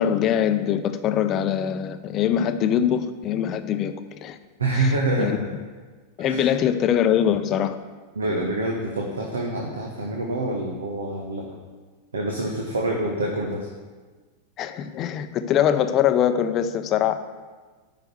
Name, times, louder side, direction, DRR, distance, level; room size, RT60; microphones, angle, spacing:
voice 1, 0.0-3.9 4.2-4.4 4.7-5.4 6.2-7.8 14.6-17.2, left 9 dB, 35° left, 10 dB, 0.6 m, -23 dB
voice 2, 4.6-5.3 6.3-6.5 8.1-11.4 12.1-13.7, right 2 dB, 70° right, 0 dB, 1.4 m, -26 dB
9.2 x 5.8 x 7.9 m, 1.4 s
figure-of-eight pair, 90°, 0 cm